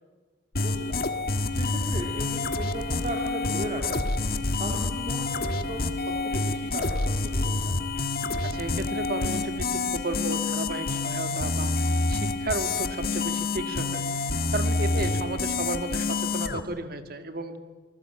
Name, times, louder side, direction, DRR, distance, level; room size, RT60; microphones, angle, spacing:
sound 1, 0.6-16.6, left 3 dB, 55° left, 1.5 m, -28 dB
voice 1, 0.6-1.0 1.5-4.2 4.6-7.7 14.9-15.0, right 1 dB, 40° right, 1 dB, 3.2 m, -37 dB
voice 2, 8.4-11.8 12.1-14.0 14.3-17.6, right 2 dB, 55° right, 8 dB, 2.1 m, -33 dB
27.0 x 20.0 x 8.9 m, 1.4 s
head